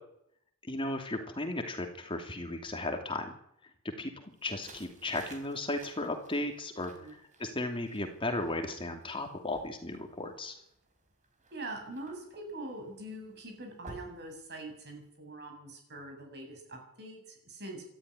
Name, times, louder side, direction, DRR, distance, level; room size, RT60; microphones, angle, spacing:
voice 1, 0.6-3.3 3.8-10.6, left 2 dB, 25° left, 4 dB, 2.7 m, -35 dB
sound 1, 4.4-15.1, right 2 dB, 35° right, 4.6 m, -56 dB
voice 2, 11.5-17.8, right 2 dB, 50° right, 3 dB, 7.6 m, -43 dB
25.0 x 14.0 x 10.0 m, 0.74 s
head